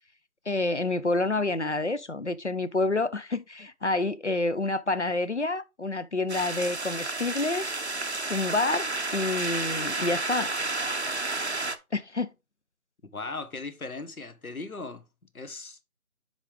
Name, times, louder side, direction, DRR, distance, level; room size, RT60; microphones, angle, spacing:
voice 1, 0.5-7.7 8.3-10.5 11.9-12.3, left 2 dB, 50° left, 0.6 m, -28 dB
sound 1, 6.3-11.8, right 2 dB, 50° right, 0.6 m, -31 dB
voice 2, 13.1-15.0 15.3-15.8, left 3 dB, 70° left, 1.3 m, -38 dB
9.9 x 3.8 x 3.4 m
figure-of-eight pair, 170°, 45 cm